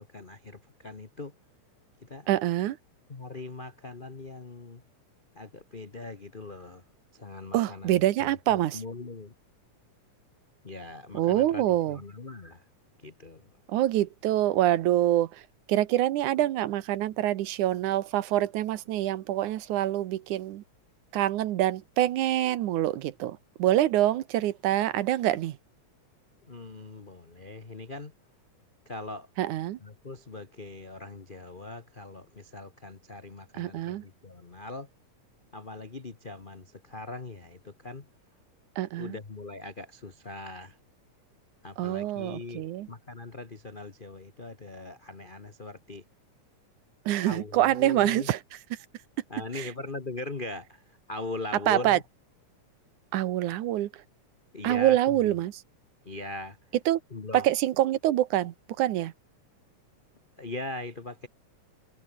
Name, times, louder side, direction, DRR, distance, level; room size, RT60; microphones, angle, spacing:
voice 1, 0.0-1.3 2.0-2.3 3.1-4.8 5.3-6.8 7.1-9.3 10.6-12.6 13.0-13.5 26.5-28.1 28.8-29.3 29.8-34.9 35.5-38.1 39.0-40.8 41.6-46.0 47.2-48.3 49.3-52.0 54.5-55.3 56.0-56.6 57.1-57.5 60.4-61.3, left 2 dB, 85° left, 0.4 m, -40 dB
voice 2, 2.3-2.8 7.5-8.8 11.1-12.0 13.7-15.3 15.7-20.6 21.1-25.6 29.4-29.8 33.6-34.0 38.8-39.1 41.8-42.9 47.1-48.4 51.7-52.0 53.1-53.9 54.6-55.5 56.9-57.0 57.3-59.1, right 13 dB, 90° right, 2.5 m, -25 dB
omnidirectional pair, 3.4 m